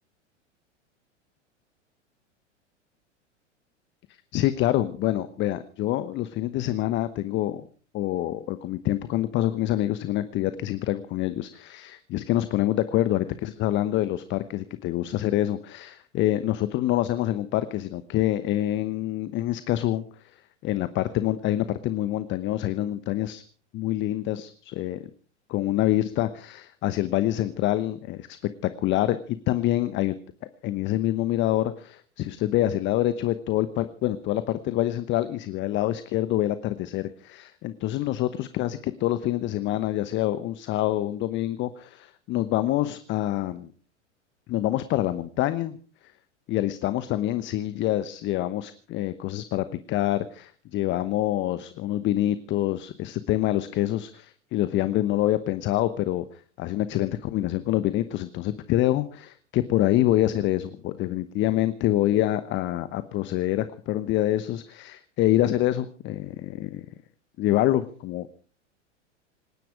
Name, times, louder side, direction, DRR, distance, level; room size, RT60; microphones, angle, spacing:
voice 1, 4.3-7.6 7.9-20.0 20.6-23.4 23.7-25.0 25.5-28.4 28.6-30.1 30.6-43.7 44.5-45.8 46.5-66.8 67.4-68.3, left 14 dB, 30° left, 13 dB, 1.0 m, -26 dB
26.5 x 10.5 x 4.9 m, 0.41 s
figure-of-eight pair, 95°, 36 cm